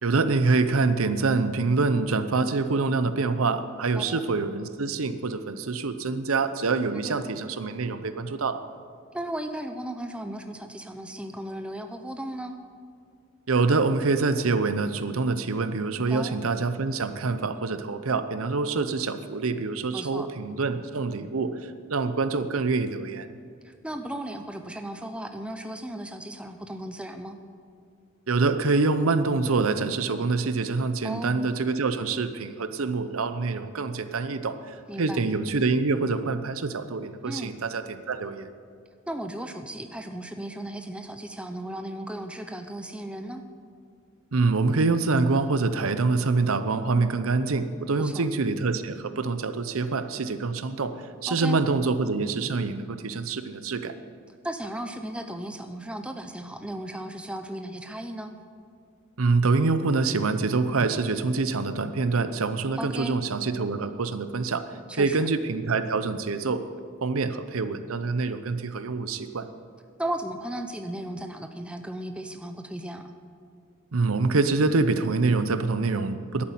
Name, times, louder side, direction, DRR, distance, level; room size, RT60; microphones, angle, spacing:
voice 1, 0.0-8.6 13.5-23.3 28.3-38.5 44.3-54.0 59.2-64.6 64.9-66.6 67.0-69.5 73.9-76.4, right 3 dB, 85° right, 11 dB, 0.7 m, -26 dB
voice 2, 9.1-12.6 16.1-16.4 19.9-20.3 23.6-27.4 31.0-31.4 34.9-35.2 37.3-37.5 39.1-43.4 48.0-48.2 51.3-51.6 54.4-58.3 62.8-63.2 64.9-65.3 70.0-73.1, right 1 dB, 5° right, 7 dB, 0.7 m, -35 dB
11.0 x 8.7 x 9.5 m, 2.2 s
head